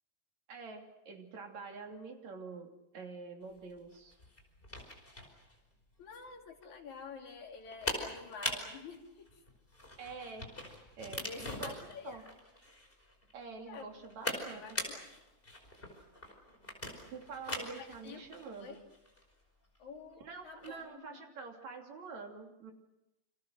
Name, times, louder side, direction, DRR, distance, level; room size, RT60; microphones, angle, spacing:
voice 1, 0.5-4.2 10.0-10.5 11.0-12.2 13.3-14.8 17.1-18.8 20.2-22.7, right 4 dB, 70° right, 2 dB, 4.3 m, -47 dB
sound 1, 3.5-20.9, left 1 dB, 15° left, 5.2 m, -43 dB
voice 2, 6.0-9.4 11.2-12.3 13.7-13.9 14.6-15.1 17.8-18.3 18.6-18.8 19.8-21.3, left 5 dB, 80° left, 1 dB, 4.3 m, -48 dB
29.0 x 26.5 x 6.4 m, 0.93 s
omnidirectional pair, 3.3 m